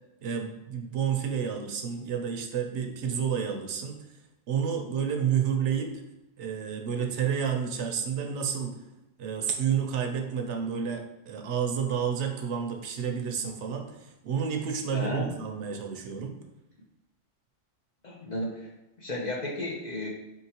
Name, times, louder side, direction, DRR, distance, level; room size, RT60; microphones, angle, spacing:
voice 1, 0.2-4.0 4.5-5.9 6.4-8.7 9.2-16.3, right 7 dB, 70° right, 3 dB, 0.9 m, -30 dB
voice 2, 14.9-15.3 18.0-18.7 19.0-20.1, left 1 dB, 45° left, -2 dB, 0.6 m, -33 dB
4.2 x 3.7 x 2.8 m, 0.99 s
omnidirectional pair, 1.3 m